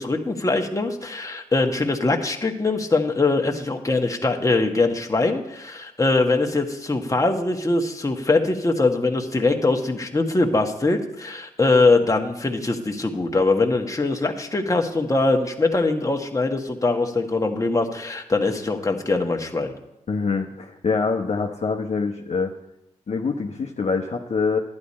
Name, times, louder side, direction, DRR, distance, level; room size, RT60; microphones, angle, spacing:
voice 1, 0.0-19.7, left 3 dB, 25° left, 3 dB, 1.5 m, -22 dB
voice 2, 20.1-22.5 23.1-24.6, left 4 dB, 55° left, 0 dB, 1.0 m, -25 dB
11.5 x 9.9 x 4.3 m, 0.85 s
supercardioid pair, 45°, 14 cm